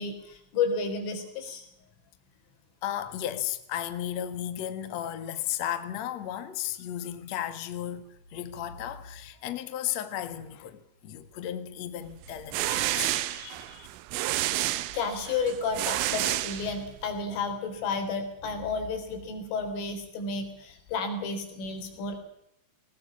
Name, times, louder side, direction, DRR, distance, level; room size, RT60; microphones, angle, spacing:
voice 1, 0.0-1.7 14.9-22.2, left 4 dB, 90° left, 6.3 m, -32 dB
voice 2, 2.8-13.9, left 11 dB, 55° left, 2.0 m, -35 dB
sound 1, 12.2-17.1, right 15 dB, 85° right, 3.5 m, -30 dB
19.5 x 19.5 x 8.5 m
omnidirectional pair, 5.5 m